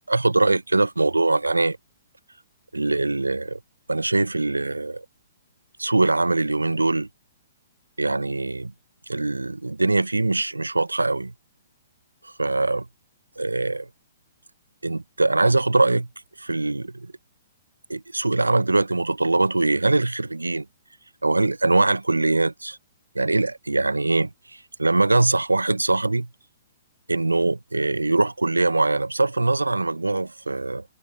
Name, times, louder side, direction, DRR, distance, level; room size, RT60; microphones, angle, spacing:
voice 1, 0.1-1.8 2.7-3.6 3.9-5.0 5.8-7.1 8.0-8.7 9.1-11.3 12.2-12.8 13.4-13.9 14.8-16.1 16.4-17.1 17.9-20.7 21.2-22.8 23.1-26.3 27.1-30.8, right 2 dB, 85° right, 0.9 m, -22 dB
figure-of-eight pair, 120°, 0 cm